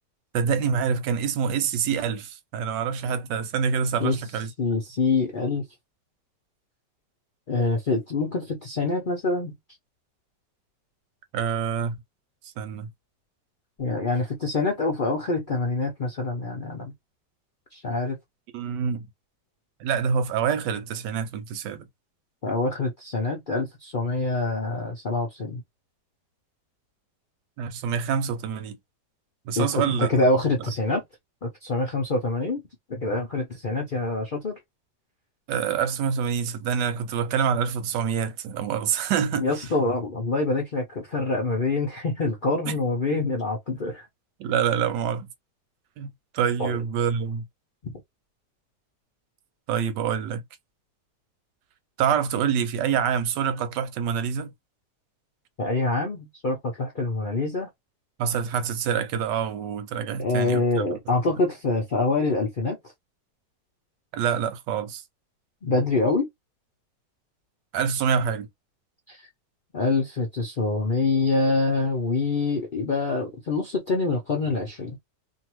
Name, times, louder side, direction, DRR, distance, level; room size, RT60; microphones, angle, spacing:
voice 1, 0.3-4.5 11.3-11.9 12.6-12.9 18.5-19.1 19.8-21.9 27.6-28.8 29.5-30.1 35.5-39.5 42.7-42.8 44.4-45.3 46.0-46.1 46.3-47.4 49.7-50.4 52.0-54.5 58.2-61.0 64.1-65.0 67.7-68.5, right 7 dB, 90° right, 1.3 m, -26 dB
voice 2, 4.6-5.6 7.5-9.6 13.8-16.9 17.7-18.2 22.4-25.6 29.6-31.0 31.4-32.6 32.9-34.6 39.4-44.1 46.6-46.8 47.8-47.9 55.6-57.7 60.2-62.8 65.6-66.3 69.1-69.3 69.7-75.0, left 3 dB, 60° left, 0.5 m, -25 dB
2.7 x 2.6 x 3.0 m
omnidirectional pair, 1.8 m